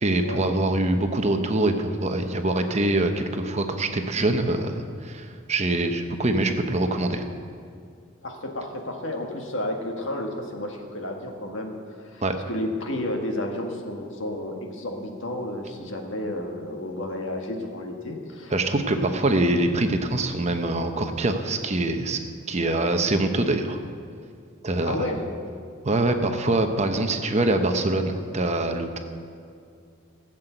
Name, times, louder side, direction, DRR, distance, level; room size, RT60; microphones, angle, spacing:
voice 1, 0.0-7.2 12.2-12.4 18.5-22.2 22.5-23.8 24.6-25.0 25.8-29.0, right 2 dB, 30° right, 6 dB, 0.9 m, -24 dB
voice 2, 8.2-11.8 12.0-18.5 24.8-25.2, left 1 dB, 60° left, 2 dB, 1.7 m, -31 dB
15.0 x 7.6 x 8.0 m, 2.4 s
head